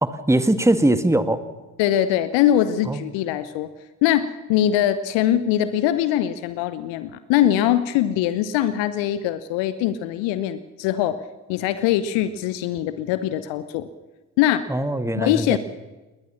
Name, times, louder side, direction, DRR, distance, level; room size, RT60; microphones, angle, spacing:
voice 1, 0.0-1.4 2.9-3.0 14.7-15.6, right 1 dB, 5° right, 10 dB, 1.7 m, -21 dB
voice 2, 1.8-3.7 4.0-11.2 11.5-13.9 14.4-14.7 15.1-15.6, left 11 dB, 60° left, 14 dB, 1.0 m, -22 dB
20.0 x 19.0 x 7.2 m, 1.2 s
figure-of-eight pair, 40°, 48 cm